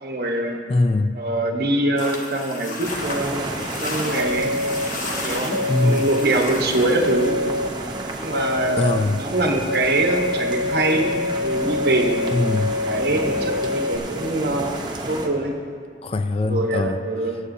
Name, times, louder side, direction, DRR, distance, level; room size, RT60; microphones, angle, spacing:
voice 1, 0.0-0.6 1.1-3.5 3.8-4.5 5.2-7.4 8.2-11.1 11.4-12.2 12.8-14.8 15.1-15.5 16.4-17.4, right 2 dB, 55° right, 1 dB, 1.1 m, -23 dB
voice 2, 0.7-1.2 5.7-6.1 8.8-9.2 12.3-12.7 16.0-17.0, left 2 dB, 30° left, 9 dB, 0.3 m, -21 dB
sound 1, 2.0-7.3, left 2 dB, 45° left, 1.1 m, -33 dB
sound 2, 2.8-15.3, right 2 dB, 25° right, 0.8 m, -32 dB
sound 3, 4.1-4.9 5.5-6.3 7.0-7.7 8.3-9.0 9.7-14.0, left 2 dB, 90° left, 0.6 m, -25 dB
20.0 x 8.3 x 2.7 m, 2.2 s
head